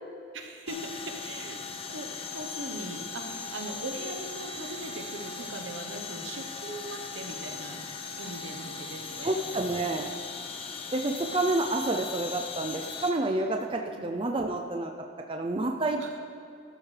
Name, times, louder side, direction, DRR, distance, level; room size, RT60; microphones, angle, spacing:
voice 1, 0.3-1.6 1.9-7.8 8.2-9.5 14.0-14.1 16.0-16.1, right 2 dB, 80° right, 4 dB, 1.0 m, -40 dB
sound 1, 0.7-13.1, left 5 dB, 30° left, 0.7 m, -39 dB
voice 2, 9.2-10.1 10.9-16.2, right 2 dB, 25° right, 3 dB, 0.4 m, -29 dB
13.0 x 12.0 x 3.3 m, 2.4 s
head